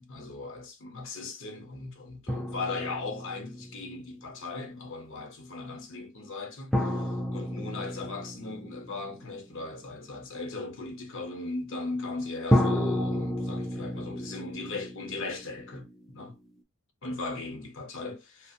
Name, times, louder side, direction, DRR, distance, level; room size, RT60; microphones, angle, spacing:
voice 1, 0.0-16.4 17.0-18.5, left 3 dB, 60° left, 0.8 m, -38 dB
sound 1, 2.3-4.1 6.7-9.6 12.5-16.3, left 1 dB, ahead, 0.4 m, -31 dB
2.4 x 2.0 x 2.7 m
head